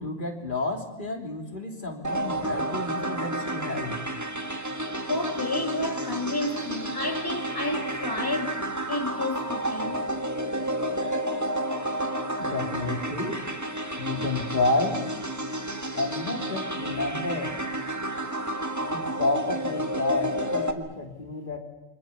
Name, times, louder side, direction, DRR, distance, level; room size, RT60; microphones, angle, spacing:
voice 1, 0.0-4.0 12.4-13.4 14.0-15.0 15.9-17.5 18.9-21.6, left 2 dB, 40° left, 3.3 m, -30 dB
sound 1, 2.0-20.7, right 1 dB, 15° right, 1.6 m, -31 dB
voice 2, 5.1-10.1, left 2 dB, 15° left, 2.2 m, -31 dB
30.0 x 25.0 x 7.1 m
omnidirectional pair, 1.3 m